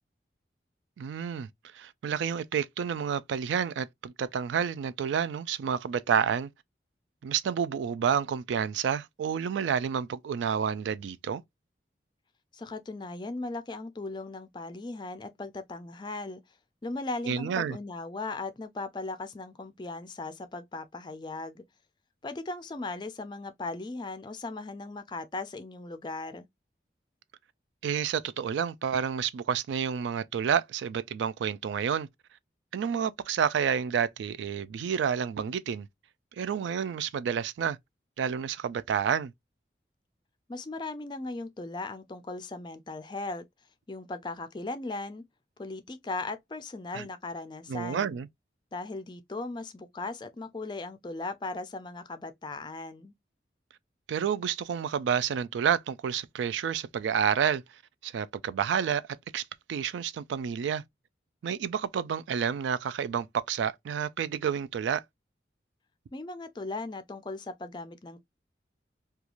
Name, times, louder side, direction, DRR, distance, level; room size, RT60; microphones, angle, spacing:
voice 1, 1.0-1.5 1.7-6.5 7.2-11.4 17.3-17.8 27.8-32.1 32.7-35.9 36.4-37.8 38.2-39.3 46.9-47.1 47.7-48.3 54.1-57.6 58.0-59.0 59.3-60.8 61.4-65.0, right 7 dB, 80° right, 0.3 m, -29 dB
voice 2, 12.5-16.4 16.8-21.6 22.2-26.5 40.5-43.5 43.9-45.2 45.6-48.1 48.7-53.1 66.1-68.2, left 3 dB, 25° left, 0.3 m, -38 dB
3.0 x 2.3 x 2.4 m
head